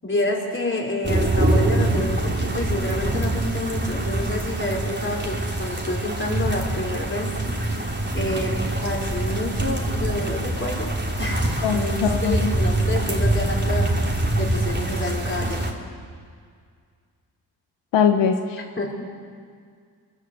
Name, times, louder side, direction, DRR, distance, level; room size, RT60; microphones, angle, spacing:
voice 1, 0.0-7.3 8.1-10.9 11.2-11.9 12.2-13.9 14.3-15.6 18.8-18.9, left 1 dB, 30° left, -1 dB, 5.6 m, -28 dB
sound 1, 1.0-15.7, right 1 dB, 25° right, 3.3 m, -24 dB
voice 2, 11.6-12.5 17.9-18.6, left 7 dB, 90° left, 5 dB, 1.1 m, -21 dB
23.5 x 14.0 x 8.0 m, 2.1 s
supercardioid pair, 45°, 42 cm